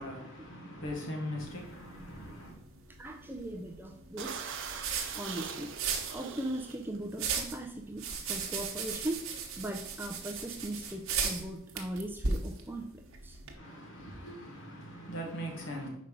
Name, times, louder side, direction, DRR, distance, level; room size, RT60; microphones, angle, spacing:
voice 1, 0.0-2.5 13.5-15.9, equal, 60° left, 1.6 m, -40 dB
sound 1, 1.4-13.5, right 5 dB, 80° right, 1.0 m, -38 dB
sound 2, 1.9-2.1 2.3-2.5 3.0-3.4 3.7-3.8 4.1-7.0 7.7-7.9 8.2-9.4, right 6 dB, 60° right, 0.7 m, -42 dB
voice 2, 3.0-4.6 5.1-5.7 6.1-9.3 9.6-13.4 15.2-15.4, right 1 dB, 10° right, 0.4 m, -39 dB
5.2 x 4.3 x 5.3 m
head